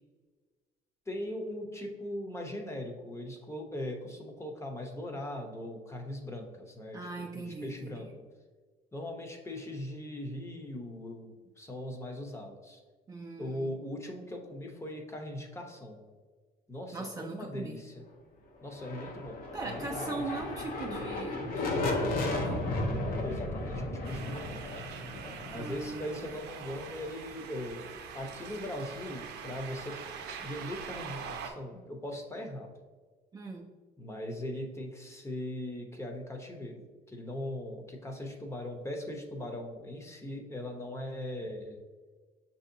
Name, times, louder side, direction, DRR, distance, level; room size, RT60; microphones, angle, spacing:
voice 1, 1.1-7.1 7.3-8.1 8.9-12.8 13.4-16.0 16.7-18.0 18.6-20.2 23.2-24.6 25.5-27.9 28.1-30.0 30.4-32.7 34.0-36.8 37.1-41.8, left 1 dB, 15° left, 2 dB, 0.7 m, -40 dB
voice 2, 6.9-8.1 13.1-13.8 16.9-17.9 19.5-22.7 25.5-26.4 33.3-33.7, right 3 dB, 20° right, 0 dB, 0.4 m, -40 dB
sound 1, 18.7-26.4, left 2 dB, 60° left, 0.7 m, -34 dB
sound 2, 24.0-31.5, right 7 dB, 75° right, 0.5 m, -44 dB
6.2 x 2.8 x 2.6 m, 1.4 s
cardioid pair, 110°, 17 cm